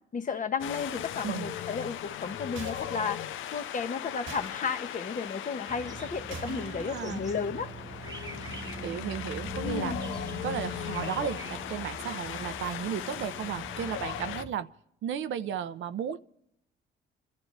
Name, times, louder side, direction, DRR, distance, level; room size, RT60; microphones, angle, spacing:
voice 1, 0.1-3.2 3.5-7.7 9.6-10.0, left 5 dB, 40° left, 1.3 m, -33 dB
Wind, 0.6-14.4, left 11 dB, 85° left, 0.6 m, -38 dB
sound 1, 2.6-3.1 4.3-4.6 6.3-6.8, right 4 dB, 90° right, 2.0 m, -42 dB
sound 2, 5.7-14.5, right 3 dB, 20° right, 1.0 m, -42 dB
voice 2, 6.4-7.3 8.8-10.0 10.4-14.7 15.0-16.2, right 8 dB, 75° right, 0.8 m, -34 dB
28.5 x 12.5 x 3.3 m
cardioid pair, 90°, 20 cm